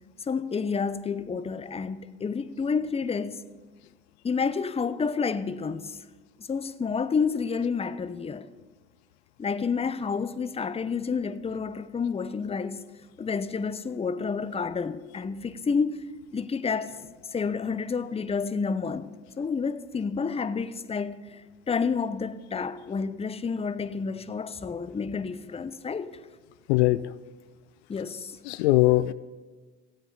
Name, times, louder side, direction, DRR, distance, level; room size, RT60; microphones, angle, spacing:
voice 1, 0.3-3.4 4.2-6.0 6.5-8.5 9.4-12.8 13.2-16.0 16.3-17.0 17.3-19.1 19.4-26.1 27.9-28.4, left 5 dB, 20° left, 0.7 m, -29 dB
voice 2, 26.7-27.0 28.5-29.1, left 18 dB, 80° left, 0.5 m, -20 dB
15.5 x 8.1 x 5.6 m
hypercardioid pair, 65°, 32 cm